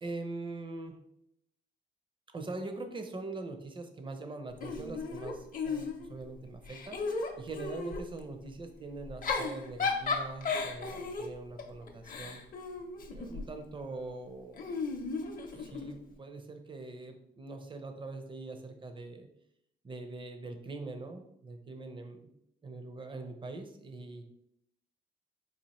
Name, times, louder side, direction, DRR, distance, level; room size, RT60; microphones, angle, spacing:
voice 1, 0.0-1.0 2.3-12.4 13.1-14.9 15.5-19.3 19.8-22.2 22.6-24.2, right 3 dB, 25° right, 6 dB, 0.5 m, -43 dB
Giggle / Chuckle chortle, 4.6-6.2 6.6-8.1 9.0-13.5 14.6-16.0, left 4 dB, 45° left, 0.6 m, -35 dB
4.1 x 2.5 x 3.0 m, 0.77 s
cardioid pair, 90°, 20 cm